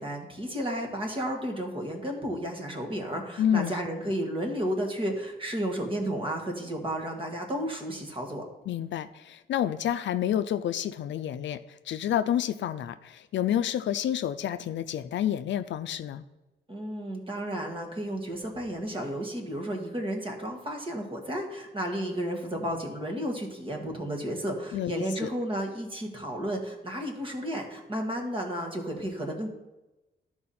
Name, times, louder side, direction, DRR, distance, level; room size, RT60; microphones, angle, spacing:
voice 1, 0.0-8.4 16.7-29.5, equal, 25° right, 1 dB, 1.7 m, -32 dB
voice 2, 3.4-3.7 8.7-11.6 11.9-16.2 24.7-25.3, left 10 dB, 75° left, 11 dB, 0.4 m, -29 dB
12.5 x 4.7 x 4.3 m, 1.0 s
wide cardioid pair, 125°, 19 cm